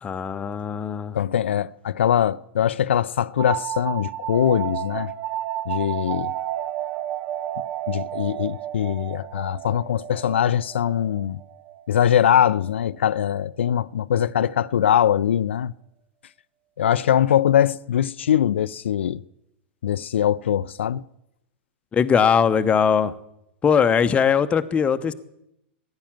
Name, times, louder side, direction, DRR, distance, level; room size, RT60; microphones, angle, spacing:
voice 1, 0.0-1.2 21.9-23.1 23.6-25.1, left 7 dB, 20° left, 0.9 m, -20 dB
voice 2, 1.1-5.1 5.7-6.3 7.9-11.4 11.9-15.7 16.8-19.2 19.8-21.0, left 9 dB, 80° left, 0.4 m, -22 dB
sound 1, 3.4-12.8, right 12 dB, 45° right, 0.7 m, -32 dB
15.0 x 10.5 x 7.4 m
hypercardioid pair, 120°, 6 cm